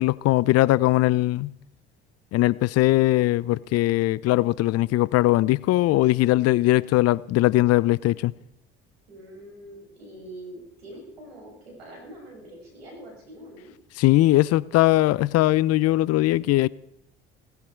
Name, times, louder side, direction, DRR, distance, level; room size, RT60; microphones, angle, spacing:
voice 1, 0.0-1.5 2.3-8.3 14.0-16.7, left 17 dB, 55° left, 0.7 m, -20 dB
voice 2, 9.1-13.7, right 1 dB, 85° right, 6.9 m, -44 dB
18.5 x 15.5 x 4.6 m
hypercardioid pair, 60°, 30 cm